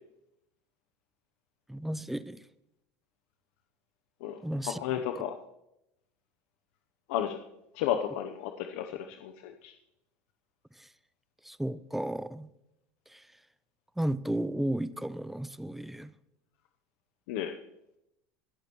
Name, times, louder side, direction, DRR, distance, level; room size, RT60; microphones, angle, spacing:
voice 1, 1.7-2.4 4.4-4.8 5.2-5.3 10.8-10.9 11.4-12.5 13.1-13.2 14.0-16.1, right 1 dB, 5° right, 16 dB, 0.5 m, -33 dB
voice 2, 4.6-5.3 7.1-7.4 7.7-9.7 17.3-17.6, left 10 dB, 75° left, 6 dB, 0.8 m, -33 dB
21.5 x 11.5 x 3.1 m, 0.86 s
supercardioid pair, 125°, 7 cm